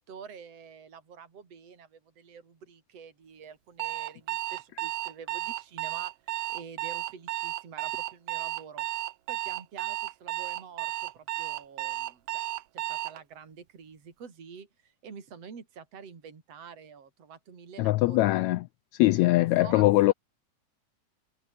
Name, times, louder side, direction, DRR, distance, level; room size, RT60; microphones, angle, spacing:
voice 1, 0.0-6.1 6.5-8.9 9.3-12.4 12.7-18.3 19.2-20.1, right 6 dB, 50° right, 4.5 m, -47 dB
Alarm, 3.8-13.2, right 15 dB, 80° right, 1.3 m, -33 dB
voice 2, 17.8-18.6 19.0-20.1, left 18 dB, 80° left, 1.7 m, -22 dB
omnidirectional pair, 3.5 m